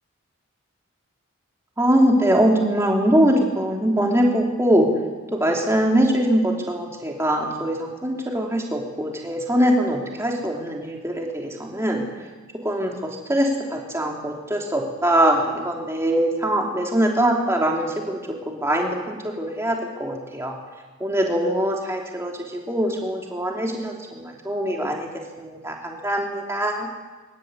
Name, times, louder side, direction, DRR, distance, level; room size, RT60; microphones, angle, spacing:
voice 1, 1.8-4.9 5.3-12.0 12.6-18.2 18.5-20.5 21.0-25.1 25.4-26.9, right 1 dB, 10° right, 0 dB, 3.2 m, -22 dB
24.5 x 13.5 x 9.7 m, 1.3 s
head